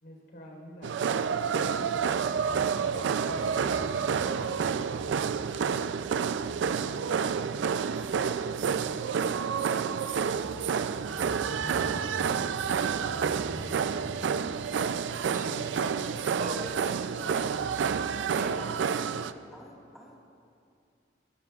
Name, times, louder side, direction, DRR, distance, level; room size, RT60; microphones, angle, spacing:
voice 1, 0.0-4.9, equal, 65° left, -1 dB, 3.9 m, -47 dB
sound 1, 0.8-19.3, right 6 dB, 80° right, 0.4 m, -29 dB
Crow / Motorcycle, 1.1-18.9, equal, 15° right, 2.3 m, -47 dB
voice 2, 15.3-16.8 17.2-17.5 18.4-18.8, right 1 dB, 45° right, 2 dB, 1.1 m, -40 dB
voice 3, 18.9-20.3, equal, ahead, -5 dB, 1.7 m, -52 dB
20.0 x 15.5 x 2.4 m, 2.5 s
head